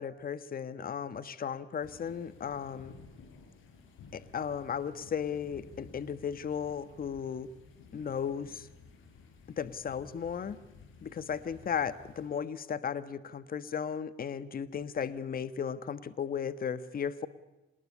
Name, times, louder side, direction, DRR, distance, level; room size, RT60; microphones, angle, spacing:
voice 1, 0.0-2.9 4.1-7.5 7.9-8.7 9.6-10.6 11.0-17.3, left 7 dB, 45° left, 13 dB, 1.5 m, -35 dB
sound 1, 1.8-12.3, left 5 dB, 85° left, 6.6 m, -54 dB
27.0 x 20.5 x 9.8 m, 1.1 s
cardioid pair, 90°, 20 cm